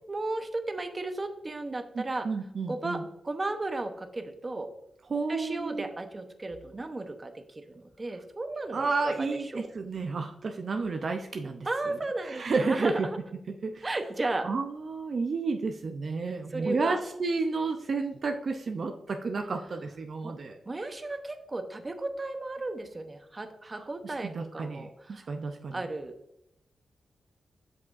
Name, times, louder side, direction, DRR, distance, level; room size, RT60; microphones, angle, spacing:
voice 1, 0.1-2.3 2.7-4.7 5.3-9.7 11.6-13.2 13.8-14.5 16.5-17.0 20.2-20.3 20.6-25.2 25.7-26.1, right 2 dB, 30° right, 7 dB, 0.8 m, -34 dB
voice 2, 1.9-3.1 5.1-5.9 8.7-12.0 12.2-13.1 13.6-13.9 14.4-20.6 23.7-25.9, right 4 dB, 55° right, 4 dB, 0.6 m, -31 dB
7.6 x 6.0 x 2.5 m, 0.81 s
cardioid pair, 85°, 0 cm